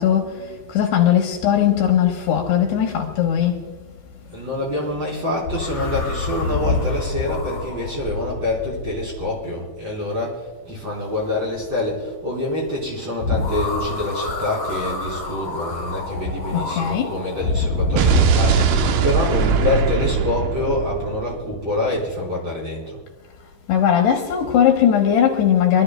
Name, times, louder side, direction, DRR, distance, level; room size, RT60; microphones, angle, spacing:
voice 1, 0.0-3.7 16.5-17.2 23.7-25.8, left 9 dB, 70° left, 3.0 m, -19 dB
voice 2, 4.3-23.0, left 2 dB, 25° right, 3.6 m, -26 dB
sound 1, 5.4-9.7 13.2-18.8, left 3 dB, 55° left, 2.1 m, -26 dB
Explosion, 18.0-22.0, right 6 dB, 75° right, 3.0 m, -20 dB
27.5 x 12.5 x 2.2 m
omnidirectional pair, 5.4 m